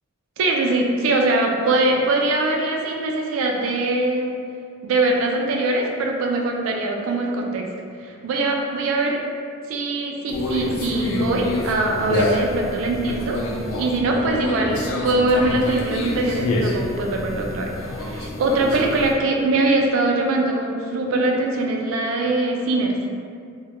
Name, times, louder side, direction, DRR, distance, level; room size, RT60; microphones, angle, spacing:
voice 1, 0.4-4.3 4.8-7.6 8.0-9.2 9.7-13.4 13.8-23.2, right 2 dB, 75° right, 1 dB, 0.3 m, -22 dB
Conversation, 10.3-19.1, left 1 dB, 80° left, 0.4 m, -26 dB
2.1 x 2.0 x 2.9 m, 2.3 s
head